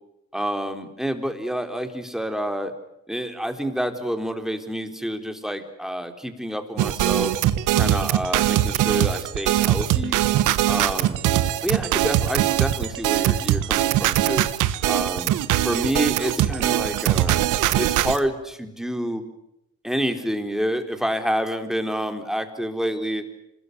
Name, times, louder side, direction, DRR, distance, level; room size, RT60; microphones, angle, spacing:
voice 1, 0.3-2.7 3.1-7.3 7.8-10.2 10.7-11.2 11.6-14.4 14.9-15.4 15.6-19.2 19.8-23.2, equal, ahead, 6 dB, 3.8 m, -28 dB
sound 1, 6.8-18.2, right 13 dB, 90° right, 1.4 m, -21 dB
26.5 x 21.0 x 9.5 m, 0.85 s
cardioid pair, 90°, 30 cm